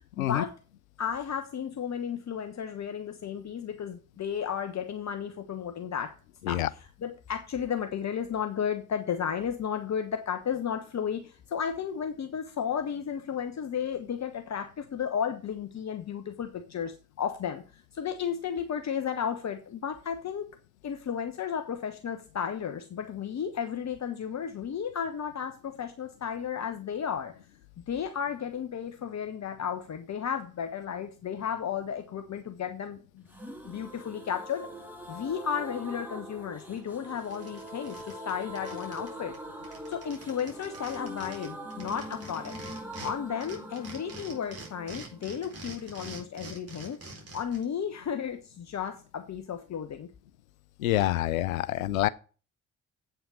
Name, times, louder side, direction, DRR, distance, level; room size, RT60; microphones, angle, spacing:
voice 1, 0.2-0.5 1.0-6.1 6.5-20.5 20.8-27.3 27.9-33.3 33.6-34.7 35.1-39.4 39.9-42.6 43.0-47.0 47.3-50.1, left 8 dB, 40° left, 1.2 m, -33 dB
sound 1, 33.3-46.9 47.2-47.3 47.5-47.6, equal, 5° right, 2.8 m, -43 dB
sound 2, 36.8-36.9 37.2-39.1 39.3-39.4 39.6-43.1 43.4-47.6, right 2 dB, 35° right, 4.1 m, -45 dB
voice 2, 50.8-52.1, left 14 dB, 80° left, 0.5 m, -26 dB
8.3 x 5.7 x 7.4 m
figure-of-eight pair, 40°, 41 cm